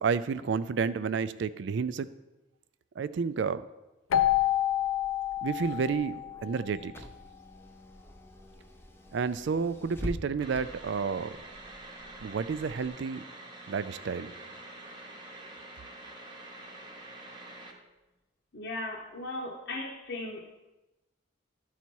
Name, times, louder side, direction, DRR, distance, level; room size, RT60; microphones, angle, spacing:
voice 1, 0.0-2.1 3.0-3.6 5.4-7.0 9.1-11.4 12.2-13.2 13.7-14.3, right 5 dB, 60° right, 14 dB, 0.3 m, -30 dB
Keyboard (musical), 4.1-6.7, left 12 dB, 85° left, 0.4 m, -28 dB
Car / Engine, 4.6-12.9, equal, 10° left, 0.5 m, -46 dB
sound 1, 10.4-17.7, right 2 dB, 25° right, 0.9 m, -47 dB
voice 2, 18.5-20.5, left 2 dB, 55° left, -3 dB, 0.8 m, -37 dB
12.0 x 4.1 x 4.5 m, 1.0 s
head